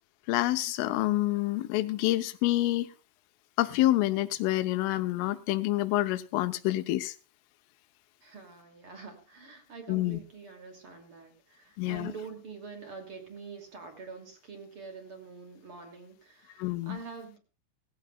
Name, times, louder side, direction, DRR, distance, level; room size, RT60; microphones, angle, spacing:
voice 1, 0.3-2.9 3.6-7.1 9.9-10.2 11.8-12.1 16.6-17.0, left 16 dB, 80° left, 11 dB, 3.5 m, -27 dB
voice 2, 8.2-17.4, right 5 dB, 35° right, 5 dB, 2.6 m, -45 dB
18.5 x 15.0 x 2.4 m, 0.35 s
omnidirectional pair, 5.7 m